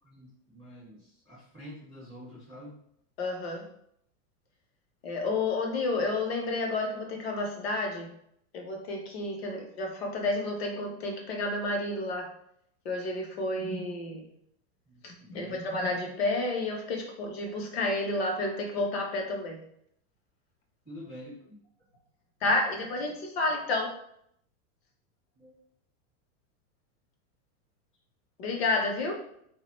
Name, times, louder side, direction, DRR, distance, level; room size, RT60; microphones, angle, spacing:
voice 1, 0.0-2.8 14.8-15.6 20.8-21.6 25.4-25.5, equal, ahead, -14 dB, 0.4 m, -47 dB
voice 2, 3.2-3.7 5.0-8.1 8.5-12.3 12.8-14.3 15.0-19.6 22.4-23.9 28.4-29.1, left 2 dB, 45° left, 1 dB, 0.6 m, -30 dB
3.2 x 2.0 x 3.0 m, 0.70 s
supercardioid pair, 180°, 44 cm